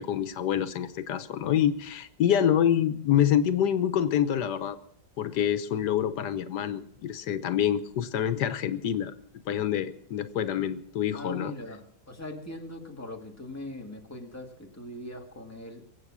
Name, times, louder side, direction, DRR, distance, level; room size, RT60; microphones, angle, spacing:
voice 1, 0.0-4.8 5.2-9.1 9.5-11.5, left 10 dB, 90° left, 11 dB, 1.5 m, -26 dB
voice 2, 11.1-15.8, left 1 dB, 10° left, 1 dB, 2.0 m, -41 dB
23.5 x 8.3 x 6.2 m, 0.69 s
omnidirectional pair, 1.7 m